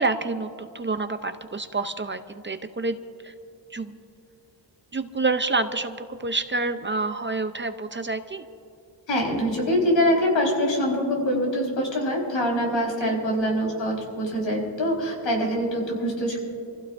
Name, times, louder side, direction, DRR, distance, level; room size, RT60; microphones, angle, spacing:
voice 1, 0.0-3.0 3.2-3.3 3.7-3.9 4.9-8.4 13.0-13.2, right 3 dB, 25° right, 9 dB, 0.6 m, -28 dB
voice 2, 9.1-16.4, equal, 80° left, -1 dB, 4.5 m, -24 dB
27.5 x 15.5 x 2.6 m, 2.7 s
wide cardioid pair, 125°, 45 cm